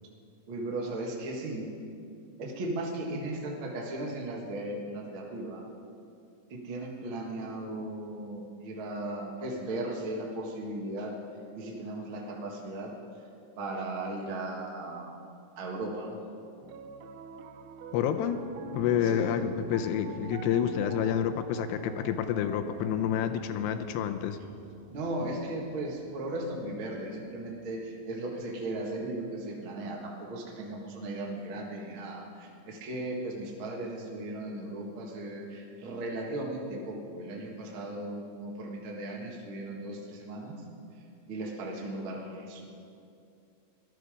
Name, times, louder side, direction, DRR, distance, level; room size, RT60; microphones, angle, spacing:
voice 1, 0.5-1.7 2.4-5.6 6.5-11.2 11.5-12.9 13.6-15.1 15.6-16.2 19.0-19.3 24.9-40.6 41.3-42.7, right 1 dB, 45° right, -2 dB, 1.7 m, -37 dB
Piano, 16.6-27.0, right 7 dB, 90° right, 2.1 m, -48 dB
voice 2, 17.9-18.4 18.7-24.4, left 9 dB, 85° left, 8 dB, 2.8 m, -28 dB
18.0 x 12.5 x 5.0 m, 2.5 s
omnidirectional pair, 4.8 m